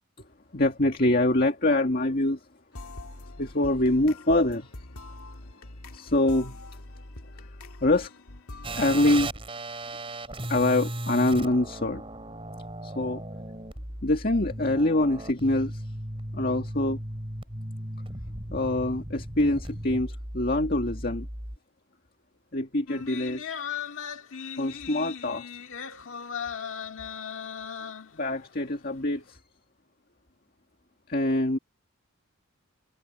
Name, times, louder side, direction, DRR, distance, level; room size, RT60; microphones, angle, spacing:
voice 1, 0.5-2.4 3.4-4.7 5.9-6.6 7.8-8.1 8.8-9.3 10.4-12.0 12.8-13.2 14.0-15.8 16.3-17.0 18.5-21.3 22.5-23.5 24.6-25.5 28.1-29.4 31.1-31.6, left 1 dB, 45° left, 2.0 m, -25 dB
sound 1, 2.7-8.8, left 2 dB, 80° left, 2.2 m, -44 dB
sound 2, 8.6-21.6, right 1 dB, 25° right, 5.4 m, -36 dB
sound 3, 22.9-28.5 28.9-29.0, left 7 dB, 65° left, 1.8 m, -37 dB
head